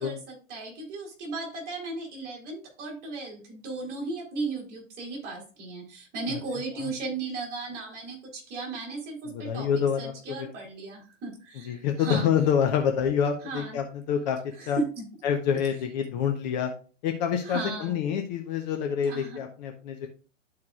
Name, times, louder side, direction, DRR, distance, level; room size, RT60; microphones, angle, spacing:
voice 1, 0.0-12.3 13.4-13.8 14.6-15.0 17.4-18.0 19.0-19.4, right 3 dB, 25° right, -2 dB, 3.2 m, -36 dB
voice 2, 9.3-10.5 11.7-14.8 15.2-16.7 17.0-20.1, left 8 dB, 35° left, 4 dB, 0.8 m, -27 dB
12.5 x 4.7 x 2.3 m, 0.37 s
hypercardioid pair, 125°, 39 cm